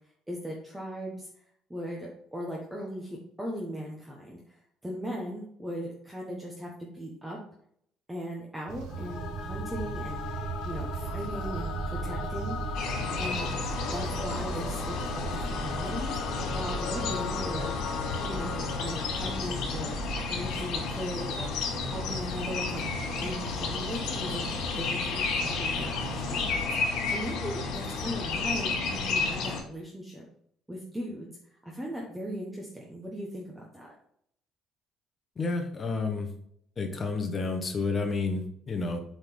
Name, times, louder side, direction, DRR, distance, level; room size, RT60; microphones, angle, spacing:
voice 1, 0.3-1.3 1.7-7.4 8.1-12.8 13.2-13.6 13.9-16.2 16.5-17.8 18.2-19.9 20.3-22.8 23.2-24.5 24.7-30.2 30.7-33.9, equal, 5° right, -3 dB, 1.2 m, -38 dB
sound 1, 8.7-26.6, right 4 dB, 75° right, 1.0 m, -38 dB
Singing / Musical instrument, 8.9-20.2, left 6 dB, 60° left, 1.2 m, -38 dB
sound 2, 12.7-29.6, left 4 dB, 75° left, 2.7 m, -32 dB
voice 2, 35.4-36.3 36.8-39.0, left 3 dB, 25° left, 4 dB, 1.4 m, -30 dB
8.0 x 4.1 x 5.3 m, 0.67 s
cardioid pair, 150°, 0 cm